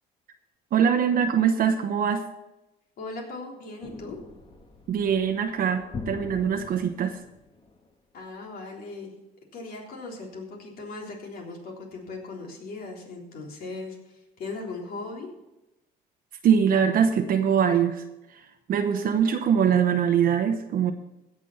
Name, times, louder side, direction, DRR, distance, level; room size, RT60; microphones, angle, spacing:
voice 1, 0.7-2.2 4.9-7.2 16.4-18.0 18.3-18.4 18.7-20.9, right 7 dB, 55° right, 5 dB, 1.0 m, -23 dB
voice 2, 3.0-4.2 8.1-9.1 9.5-15.3, left 3 dB, 60° left, 0 dB, 3.6 m, -38 dB
sound 1, 3.8-7.9, left 4 dB, 30° left, 1.7 m, -42 dB
16.5 x 6.2 x 5.7 m, 0.94 s
cardioid pair, 110°, 17 cm